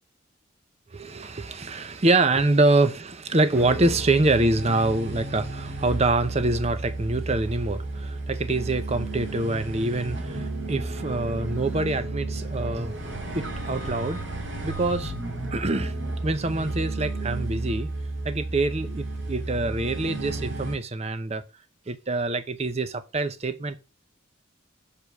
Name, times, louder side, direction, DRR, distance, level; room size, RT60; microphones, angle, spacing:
voice 1, 0.9-13.0 13.3-14.2 14.6-15.1 15.5-15.9 16.2-17.9 18.2-21.4 21.9-23.8, right 2 dB, 30° right, 0.8 m, -25 dB
sound 1, 3.5-20.8, right 2 dB, 65° right, 2.2 m, -32 dB
6.7 x 5.1 x 6.1 m
head